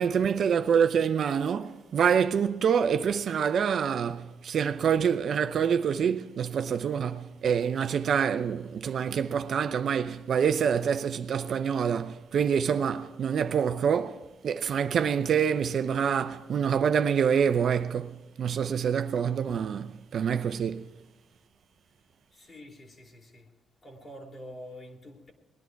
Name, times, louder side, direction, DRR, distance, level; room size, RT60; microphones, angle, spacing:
voice 1, 0.0-20.8, right 7 dB, 60° right, 0.7 m, -26 dB
voice 2, 22.3-23.5 23.8-25.3, equal, 35° left, 2.9 m, -46 dB
20.0 x 11.0 x 4.6 m
cardioid pair, 90°, 0 cm